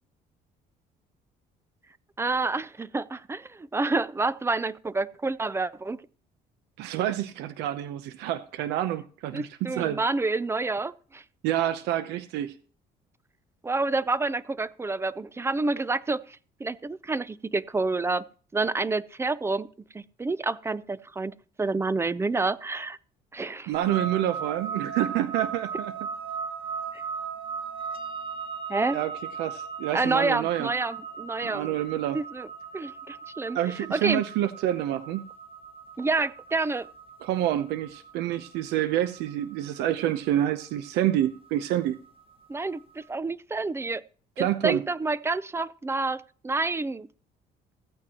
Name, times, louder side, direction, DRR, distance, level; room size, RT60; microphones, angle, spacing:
voice 1, 2.2-6.1 9.3-11.2 13.6-18.2 18.5-19.7 19.9-23.0 23.3-23.7 28.7-29.0 29.9-31.8 32.1-32.5 32.7-33.6 33.9-34.2 36.0-36.9 42.5-44.0 44.4-47.1, right 3 dB, 15° right, 0.5 m, -28 dB
voice 2, 6.8-10.0 11.4-12.6 23.7-25.9 28.9-29.1 29.4-30.7 31.4-32.2 33.5-35.3 37.2-42.0 44.4-44.8, right 12 dB, 90° right, 0.7 m, -28 dB
sound 1, 23.7-42.8, right 6 dB, 35° right, 1.5 m, -38 dB
15.0 x 8.8 x 2.9 m
cardioid pair, 110°, 17 cm